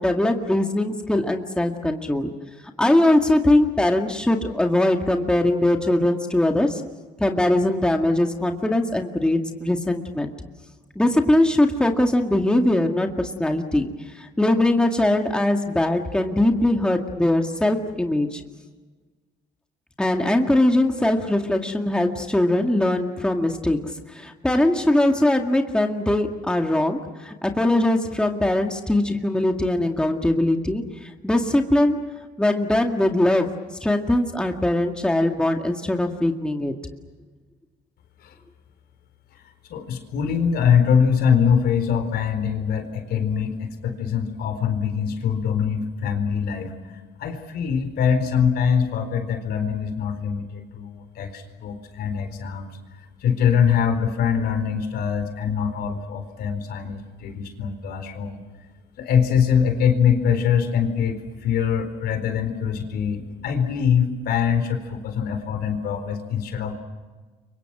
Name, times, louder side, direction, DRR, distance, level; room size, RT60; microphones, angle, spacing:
voice 1, 0.0-2.3 2.8-6.8 7.2-10.3 11.0-18.4 20.0-32.0 32.4-36.7, left 1 dB, 5° left, 3 dB, 2.0 m, -21 dB
voice 2, 39.7-46.7 47.2-52.7 53.2-58.4 59.0-66.7, left 7 dB, 70° left, 7 dB, 4.3 m, -23 dB
29.5 x 24.5 x 6.1 m, 1.4 s
cardioid pair, 110°, 17 cm